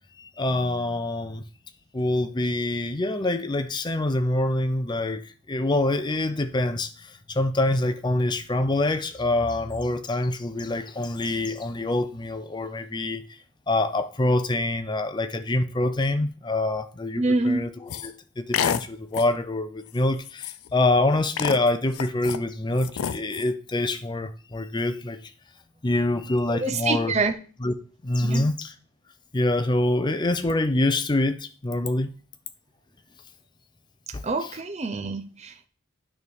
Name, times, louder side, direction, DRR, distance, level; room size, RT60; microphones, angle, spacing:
voice 1, 0.2-1.4 1.9-13.2 13.7-25.2 25.8-27.1 27.6-27.7 28.0-28.7 29.3-32.1 34.1-34.2, left 2 dB, 20° left, 0.5 m, -25 dB
voice 2, 17.2-17.6 26.5-27.3 28.2-28.5 34.2-35.7, right 3 dB, 30° right, 0.7 m, -26 dB
sound 1, 17.9-18.1 18.5-18.8 19.1-19.4 19.9-20.0 20.2-20.7 21.4-22.4 22.8-23.5, left 8 dB, 80° left, 0.5 m, -28 dB
9.3 x 3.5 x 6.3 m
head